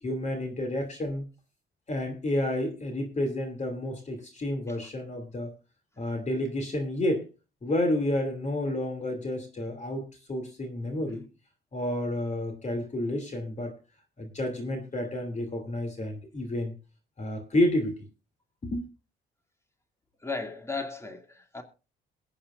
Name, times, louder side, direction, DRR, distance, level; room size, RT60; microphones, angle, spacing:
voice 1, 0.0-1.2 1.9-5.5 6.0-7.3 7.6-11.2 11.7-13.7 14.2-16.8 17.2-18.0 18.6-18.9, left 1 dB, 35° left, 2.7 m, -30 dB
voice 2, 20.2-21.6, left 3 dB, 15° left, 2.3 m, -35 dB
22.0 x 8.7 x 2.5 m
cardioid pair, 90°, 20 cm